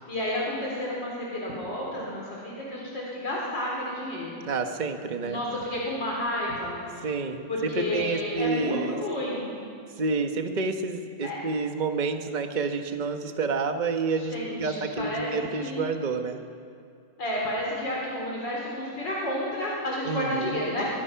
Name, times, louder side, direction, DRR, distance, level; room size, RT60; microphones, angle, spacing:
voice 1, 0.1-4.4 5.2-7.1 7.5-9.5 11.2-11.4 14.2-15.3 15.5-15.9 17.2-20.9, left 1 dB, 70° left, -4 dB, 4.4 m, -31 dB
voice 2, 4.4-5.4 7.0-9.0 10.0-16.4 20.0-20.6, right 4 dB, 30° right, 6 dB, 1.1 m, -29 dB
23.0 x 22.0 x 5.8 m, 2.4 s
omnidirectional pair, 2.0 m